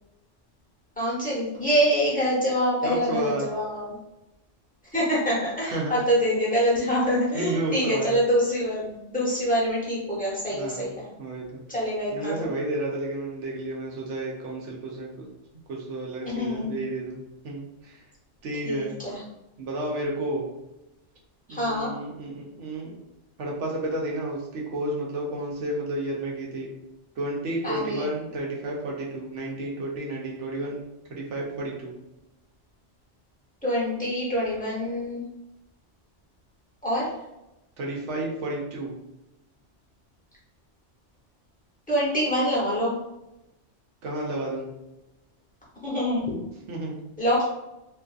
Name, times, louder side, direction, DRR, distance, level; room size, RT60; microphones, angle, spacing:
voice 1, 1.0-4.0 4.9-10.9 11.7-12.5 16.2-16.8 18.6-19.2 21.5-21.9 27.6-28.0 33.6-35.2 36.8-37.1 41.9-42.9 45.8-46.3 47.2-47.4, equal, 10° left, -8 dB, 0.8 m, -25 dB
voice 2, 2.8-3.5 5.6-5.9 7.3-8.2 10.5-10.9 11.2-11.6 12.1-15.3 15.7-17.2 17.4-18.0 18.4-19.0 19.6-20.5 21.5-22.9 23.4-26.7 27.2-30.8 31.1-31.9 37.8-38.9 44.0-44.7 46.7-47.0, right 1 dB, 80° right, -2 dB, 1.0 m, -31 dB
2.5 x 2.4 x 2.3 m, 0.93 s
omnidirectional pair, 1.2 m